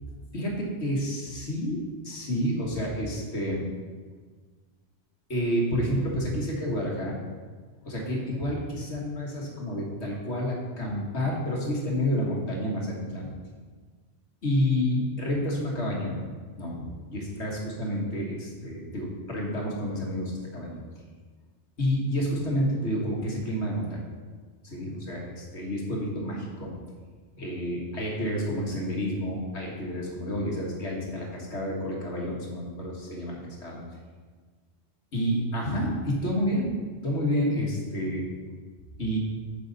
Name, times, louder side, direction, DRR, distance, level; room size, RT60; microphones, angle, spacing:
voice 1, 0.3-1.8 2.0-3.6 5.3-7.2 7.8-13.3 14.4-16.1 16.6-20.8 21.8-24.0 24.6-26.7 27.4-33.8 35.1-36.7 37.0-38.3 39.0-39.2, equal, 85° left, -3 dB, 2.1 m, -29 dB
9.4 x 6.4 x 4.1 m, 1.5 s
omnidirectional pair, 1.1 m